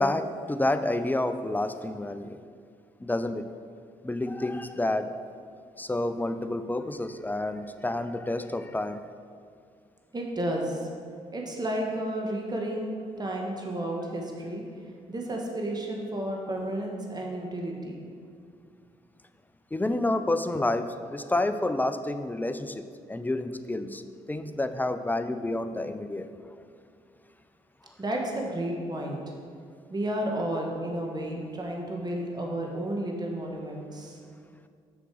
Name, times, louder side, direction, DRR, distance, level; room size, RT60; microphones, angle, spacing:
voice 1, 0.0-2.4 3.0-3.5 4.0-5.1 5.8-9.0 19.7-24.0 24.3-26.6 27.8-27.9, left 2 dB, 10° left, 10 dB, 0.5 m, -29 dB
voice 2, 10.1-10.8 11.3-14.6 15.1-17.9 28.0-29.2 29.9-34.2, right 1 dB, 25° right, 0 dB, 1.4 m, -32 dB
6.5 x 6.3 x 4.7 m, 2.2 s
hypercardioid pair, 45°, 16 cm